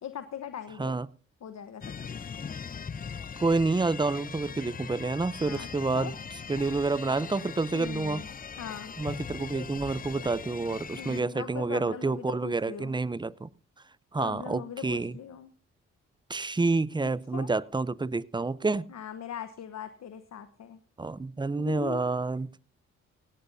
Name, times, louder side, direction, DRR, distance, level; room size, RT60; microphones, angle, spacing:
voice 1, 0.0-0.9 1.4-2.1 5.5-5.7 5.9-6.1 7.7-8.3 8.6-8.9 11.0-13.0 14.2-15.5 17.0-17.5 18.9-20.8 21.6-22.0, left 8 dB, 65° left, 1.1 m, -40 dB
sound 1, 1.8-11.2, left 6 dB, 30° left, 0.6 m, -40 dB
voice 2, 3.4-6.2 6.5-8.2 9.0-13.5 14.1-15.1 16.3-18.9 21.0-22.5, right 3 dB, 15° right, 0.6 m, -28 dB
17.5 x 17.0 x 2.7 m
supercardioid pair, 60°, 29 cm